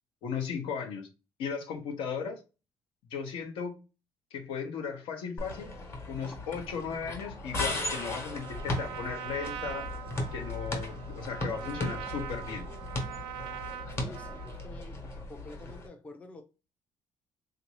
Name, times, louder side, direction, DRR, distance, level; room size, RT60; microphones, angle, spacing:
voice 1, 0.2-1.1 1.4-2.4 3.1-3.7 4.3-5.7 6.1-9.9 10.3-12.7, left 6 dB, 85° left, 0.9 m, -36 dB
sound 1, 5.4-15.9, left 2 dB, 30° left, 1.0 m, -37 dB
Trumpet, 7.5-14.7, right 11 dB, 80° right, 0.4 m, -42 dB
sound 2, 8.7-14.3, left 3 dB, 55° left, 0.9 m, -51 dB
voice 2, 14.0-15.0 15.3-16.4, left 3 dB, 15° left, 0.4 m, -48 dB
3.6 x 2.6 x 2.9 m
cardioid pair, 170°, 9 cm